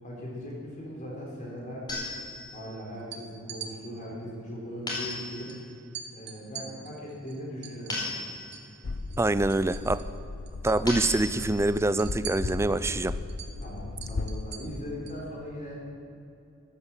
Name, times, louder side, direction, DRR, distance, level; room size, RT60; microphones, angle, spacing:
voice 1, 0.0-2.0 2.5-5.5 6.1-8.1 13.5-15.9, equal, 35° left, -3 dB, 3.6 m, -39 dB
sound 1, 1.9-2.8 4.9-5.7 7.9-8.8 10.9-11.8, left 2 dB, 20° left, 4.2 m, -36 dB
sound 2, 3.0-3.7 5.1-5.2 5.5-5.6 5.9-8.7 9.0-10.2 10.5-10.8 11.1-15.2, right 8 dB, 55° right, 1.5 m, -43 dB
sound 3, 8.8-14.6, left 3 dB, 65° left, 0.6 m, -36 dB
voice 2, 9.2-10.0 10.6-13.2, right 2 dB, 15° right, 14 dB, 0.4 m, -25 dB
13.5 x 12.5 x 7.2 m, 2.7 s
head